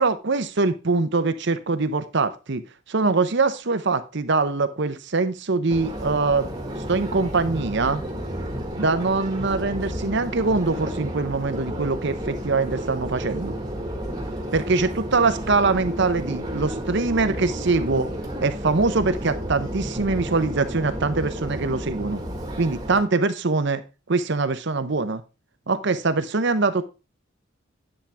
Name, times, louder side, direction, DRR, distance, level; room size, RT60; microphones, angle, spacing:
voice 1, 0.0-2.6 2.9-6.5 6.9-8.0 8.8-13.5 14.5-18.1 18.4-22.2 22.6-23.8 24.1-25.2 25.7-26.8, right 3 dB, 55° right, 11 dB, 0.8 m, -23 dB
Subway metro underground, 5.7-23.0, equal, 20° right, 1.7 m, -32 dB
10.0 x 7.5 x 3.5 m, 0.30 s
head